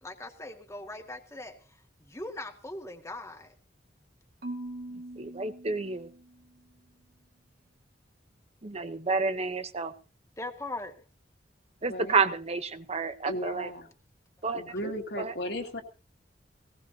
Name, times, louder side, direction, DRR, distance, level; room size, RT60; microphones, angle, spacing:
voice 1, 0.0-1.6 2.0-3.5 10.4-10.9, left 2 dB, 15° left, 4 dB, 1.9 m, -40 dB
Marimba xylophone / Wood, 4.4-6.6, right 1 dB, 60° right, 1.9 m, -42 dB
voice 2, 5.2-6.1 8.6-9.9 11.8-13.7 14.4-14.6 15.2-15.3, right 4 dB, 35° right, 10 dB, 0.9 m, -30 dB
voice 3, 11.9-12.2 13.3-13.9 14.5-15.8, equal, 70° left, 3 dB, 2.4 m, -35 dB
19.0 x 18.0 x 2.8 m, 0.34 s
head